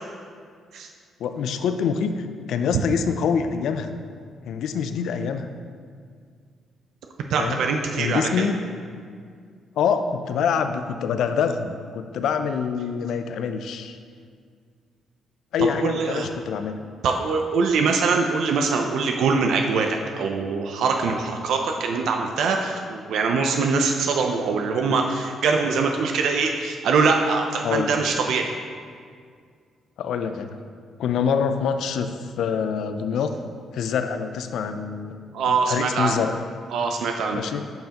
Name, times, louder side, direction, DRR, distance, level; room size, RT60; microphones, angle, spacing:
voice 1, 1.2-3.9 4.5-5.5 7.4-7.6 8.0-8.6 9.8-14.0 15.5-16.8 27.6-27.9 30.0-30.5 31.0-33.3 33.7-35.2 35.5-36.4 37.3-37.6, left 6 dB, 75° left, 9 dB, 0.4 m, -25 dB
voice 2, 7.3-8.5 15.8-16.3 17.0-28.5 35.3-36.2 36.7-37.4, right 4 dB, 80° right, 3 dB, 0.5 m, -23 dB
8.7 x 5.5 x 2.9 m, 2.1 s
cardioid pair, 90°, 0 cm